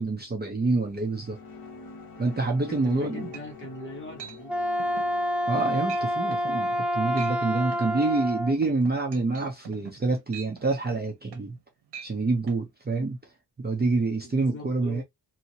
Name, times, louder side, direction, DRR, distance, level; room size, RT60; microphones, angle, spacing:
voice 1, 0.0-1.4 2.2-3.3 5.5-11.6 12.0-13.2 13.6-15.0, right 3 dB, 25° right, 0.7 m, -27 dB
sound 1, 0.9-9.5, left 4 dB, 60° left, 1.2 m, -47 dB
voice 2, 2.7-4.5 14.2-15.0, left 1 dB, 30° left, 1.2 m, -41 dB
sound 2, 2.9-3.0 3.3-3.8 4.2-4.4 4.8-5.1 5.5-5.6 5.9-6.1 6.3-6.5 7.0-7.4 7.7-11.6 11.9-12.1 12.5-12.6, right 8 dB, 80° right, 0.9 m, -44 dB
Wind instrument woodwind instrument, 4.4-8.6, equal, 5° right, 0.3 m, -28 dB
2.8 x 2.7 x 2.7 m
wide cardioid pair, 175°, 40 cm